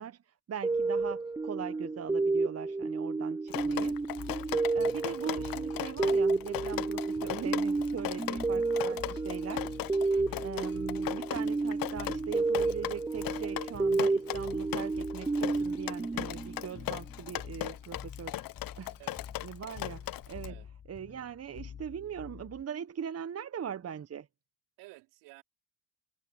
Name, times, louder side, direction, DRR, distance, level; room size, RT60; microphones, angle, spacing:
voice 1, 0.0-4.0 4.7-10.1 10.4-18.4 18.8-19.0 19.4-20.6 20.9-24.3, right 8 dB, 40° right, 1.1 m, -41 dB
sound 1, 0.6-17.0, right 3 dB, 10° right, 0.4 m, -31 dB
Drip, 3.5-20.5, left 15 dB, 60° left, 0.8 m, -38 dB
sound 2, 3.6-22.6, left 8 dB, 30° left, 0.7 m, -48 dB
voice 2, 8.2-8.5 10.1-10.5 19.0-19.3 20.5-20.7 24.8-25.4, right 23 dB, 80° right, 4.7 m, -53 dB
hypercardioid pair, 60°, 39 cm